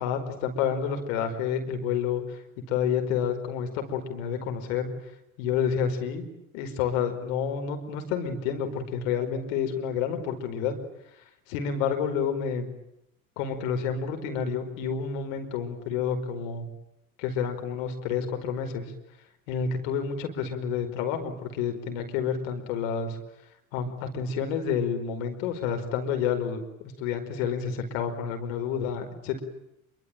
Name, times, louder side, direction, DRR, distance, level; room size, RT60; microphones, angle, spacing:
voice 1, 0.0-2.4 2.7-4.9 5.4-6.2 6.5-10.7 11.5-12.7 13.4-16.7 17.2-18.9 19.5-23.2 23.7-26.6 27.0-29.4, left 7 dB, 65° left, 6 dB, 5.0 m, -29 dB
26.5 x 24.5 x 9.2 m, 0.82 s
hypercardioid pair, 70°, 41 cm